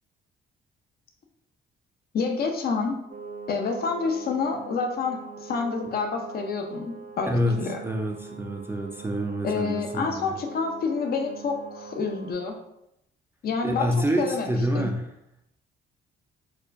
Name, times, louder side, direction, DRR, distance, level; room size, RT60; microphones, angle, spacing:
voice 1, 2.1-3.0 3.5-7.8 9.4-12.6 13.4-13.9 14.2-14.9, left 4 dB, 50° left, 3 dB, 0.6 m, -28 dB
sound 1, 3.1-12.3, right 5 dB, 50° right, 0.7 m, -43 dB
voice 2, 7.8-10.3 13.6-15.0, equal, 10° right, 2 dB, 0.4 m, -27 dB
4.3 x 2.2 x 2.5 m, 0.81 s
cardioid pair, 90°, 20 cm